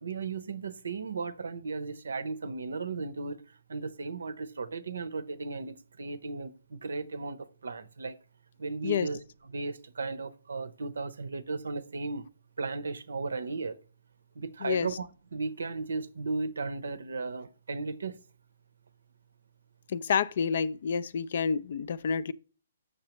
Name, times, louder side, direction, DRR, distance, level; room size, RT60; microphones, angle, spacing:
voice 1, 0.0-3.4 3.7-8.2 8.6-9.2 9.5-12.3 12.6-13.8 14.4-18.2, right 4 dB, 80° right, 0.6 m, -35 dB
voice 2, 19.9-22.3, left 6 dB, 60° left, 0.3 m, -29 dB
6.6 x 6.4 x 2.9 m
hypercardioid pair, 140°, 0 cm